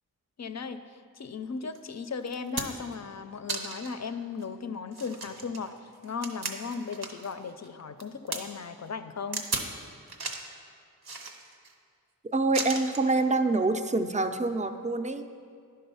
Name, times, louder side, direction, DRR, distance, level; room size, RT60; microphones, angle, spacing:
voice 1, 0.4-0.8 1.1-5.7 6.0-9.5, left 5 dB, 45° left, 10 dB, 0.4 m, -36 dB
sound 1, 1.7-1.8 2.3-2.9 3.5-4.0 4.4-4.5 4.9-7.3 7.6-8.4 9.3-9.7 10.1-10.5 11.0-11.7 12.5-13.1 14.2-14.3, right 4 dB, 80° right, 0.8 m, -35 dB
voice 2, 12.3-15.2, right 3 dB, 20° right, 8 dB, 0.4 m, -26 dB
10.5 x 3.8 x 5.5 m, 2.2 s
wide cardioid pair, 45°, 38 cm